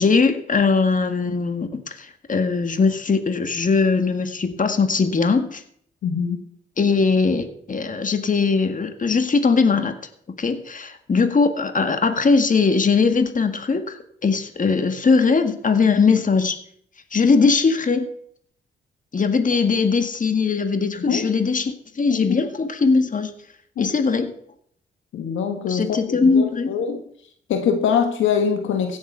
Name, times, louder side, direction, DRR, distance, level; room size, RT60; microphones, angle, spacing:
voice 1, 0.0-5.6 6.8-9.9 10.4-16.6 17.1-18.1 19.1-23.3 23.8-24.3 25.7-26.7, left 4 dB, 40° left, 8 dB, 1.8 m, -20 dB
voice 2, 6.0-6.4 21.1-21.2 22.1-22.4 23.8-23.9 25.1-27.0 27.5-29.0, left 7 dB, 80° left, 6 dB, 1.7 m, -23 dB
16.0 x 7.2 x 5.7 m, 0.64 s
supercardioid pair, 55°, 20 cm